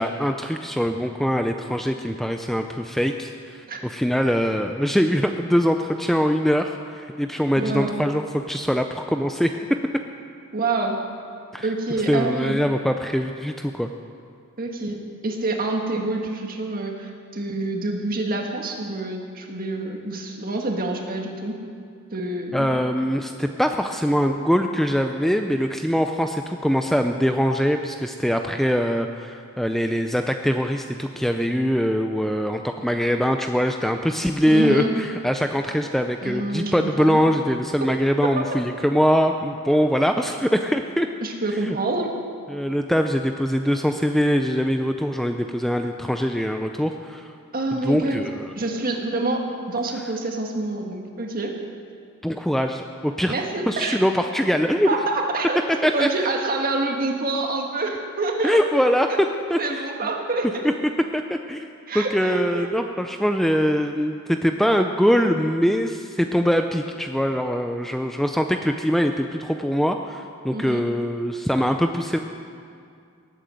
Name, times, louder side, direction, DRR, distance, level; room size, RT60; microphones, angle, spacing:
voice 1, 0.0-3.3 3.8-9.5 11.5-11.7 12.1-13.9 22.5-41.1 41.6-41.8 42.5-47.3 47.7-48.5 52.2-53.3 53.7-54.9 55.8-56.1 58.4-59.1 59.5-59.6 60.6-60.7 61.1-61.7 61.9-72.2, equal, ahead, 5 dB, 0.5 m, -22 dB
voice 2, 7.6-8.0 10.5-11.0 11.6-12.6 14.6-21.6 22.1-22.7 34.5-34.9 36.2-37.2 37.8-37.9 38.2-38.5 41.2-42.1 47.5-48.2 48.6-49.4 49.7-51.5 53.3-54.0 54.9-55.6 55.9-58.6 59.6-60.7 61.9-62.7 70.5-70.8, right 2 dB, 40° right, 2 dB, 1.8 m, -27 dB
18.0 x 9.1 x 7.7 m, 2.3 s
head